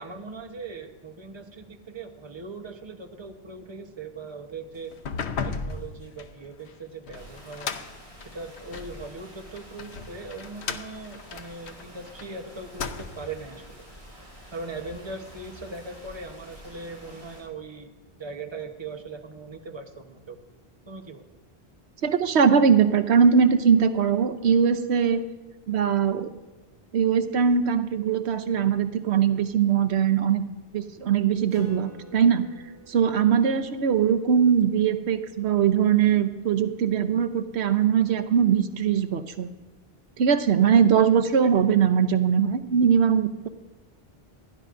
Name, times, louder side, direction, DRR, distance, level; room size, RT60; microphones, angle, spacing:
voice 1, 0.0-4.9 5.4-7.7 8.3-13.8 14.5-17.9 18.2-20.4 20.9-21.2 41.4-41.8, right 3 dB, 25° right, 4 dB, 1.0 m, -40 dB
sound 1, 4.9-9.0 9.6-12.3 12.6-13.4, left 5 dB, 85° left, 1.0 m, -35 dB
sound 2, 7.1-17.4, equal, 50° right, 5.5 m, -48 dB
voice 2, 22.0-25.2 25.7-26.3 26.9-30.4 30.7-32.5 32.9-39.5 40.2-43.5, right 7 dB, 85° right, 9 dB, 1.0 m, -21 dB
Acoustic guitar, 31.5-36.5, left 1 dB, 45° left, 5.3 m, -48 dB
27.0 x 11.0 x 2.6 m, 1.2 s
omnidirectional pair, 1.1 m